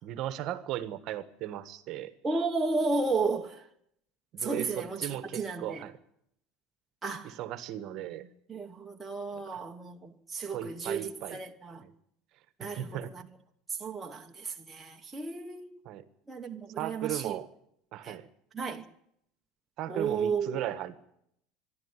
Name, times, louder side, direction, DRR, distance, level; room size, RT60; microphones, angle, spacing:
voice 1, 0.0-2.1 4.3-6.0 7.2-8.2 9.5-9.6 10.5-11.4 11.8-11.9 12.6-13.1 15.8-16.0 16.8-17.5 17.9-18.3 19.8-21.1, right 12 dB, 40° right, 1.4 m, -37 dB
voice 2, 2.2-3.6 4.4-5.8 7.0-7.4 8.0-8.1 8.5-11.8 12.6-13.2 13.7-15.8 16.3-17.4 18.0-18.2 18.5-18.8 19.9-20.6, right 4 dB, 10° right, 1.1 m, -33 dB
25.5 x 11.5 x 9.8 m
cardioid pair, 170°, 0 cm